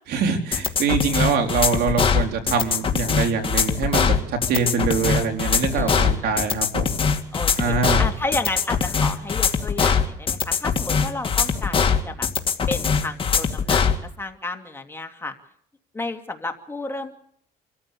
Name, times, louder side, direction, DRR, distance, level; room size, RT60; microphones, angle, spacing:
voice 1, 0.1-7.0 7.6-8.1, right 5 dB, 70° right, 5 dB, 4.0 m, -24 dB
sound 1, 0.5-14.0, left 6 dB, 30° left, 2.3 m, -21 dB
voice 2, 5.7-6.4 7.3-12.3 12.7-13.8 14.2-15.3 15.9-17.2, left 2 dB, 15° left, 4 dB, 2.6 m, -32 dB
27.5 x 14.5 x 8.5 m, 0.65 s
cardioid pair, 110°, 17 cm